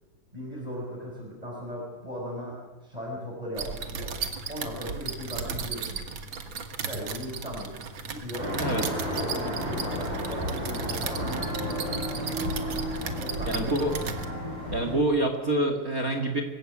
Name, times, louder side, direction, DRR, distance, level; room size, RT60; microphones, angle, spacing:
voice 1, 0.3-4.1 4.4-6.0 6.8-8.6 9.1-11.9 13.2-13.7, equal, 10° right, -5 dB, 5.7 m, -38 dB
sound 1, 3.6-14.2, right 5 dB, 55° right, 1.4 m, -36 dB
sound 2, 8.4-14.9, equal, 90° right, 9.3 m, -32 dB
voice 2, 13.5-13.9 14.7-16.4, right 1 dB, 30° right, 5 dB, 1.8 m, -26 dB
26.0 x 15.5 x 8.7 m, 1.1 s
omnidirectional pair, 4.2 m